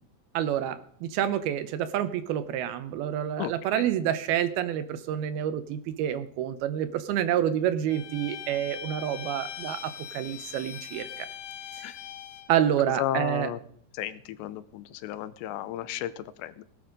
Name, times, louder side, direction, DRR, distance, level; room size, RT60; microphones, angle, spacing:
voice 1, 0.3-11.3 12.5-13.5, right 10 dB, 75° right, 12 dB, 2.4 m, -28 dB
voice 2, 3.4-3.9 11.8-12.0 13.0-13.6 13.9-16.6, left 12 dB, 90° left, 15 dB, 3.0 m, -34 dB
Bowed string instrument, 7.9-12.5, left 10 dB, 70° left, 2.3 m, -41 dB
18.0 x 11.5 x 5.2 m, 0.63 s
omnidirectional pair, 4.9 m